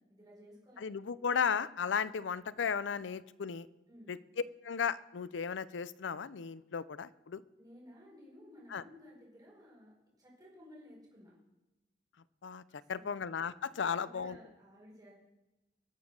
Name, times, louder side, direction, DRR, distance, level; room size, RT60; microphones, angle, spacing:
voice 1, 0.1-0.9 3.9-4.2 7.6-9.9 10.2-11.3 12.7-13.1 14.0-15.1, equal, 20° right, -4 dB, 4.8 m, -56 dB
voice 2, 0.8-3.7 4.1-4.2 4.6-7.4 8.7-8.8 12.4-12.6 12.9-14.4, left 6 dB, 75° left, 17 dB, 0.5 m, -35 dB
21.5 x 7.3 x 6.4 m, 1.0 s
head